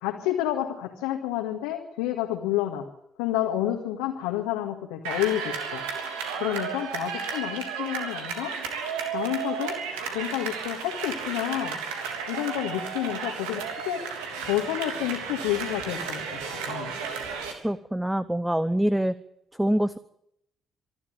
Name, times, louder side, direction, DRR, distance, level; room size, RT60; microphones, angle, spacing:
voice 1, 0.0-2.9 3.2-5.8 6.4-8.5 9.1-9.7 10.1-11.8 12.3-14.0 14.5-16.2 16.6-16.9, left 13 dB, 70° left, 1 dB, 1.9 m, -29 dB
sound 1, 5.0-17.5, right 6 dB, 70° right, 3.3 m, -33 dB
voice 2, 17.6-19.1 19.6-20.0, right 1 dB, 5° right, 16 dB, 0.9 m, -25 dB
25.5 x 12.0 x 9.3 m, 0.77 s
figure-of-eight pair, 45°, 0 cm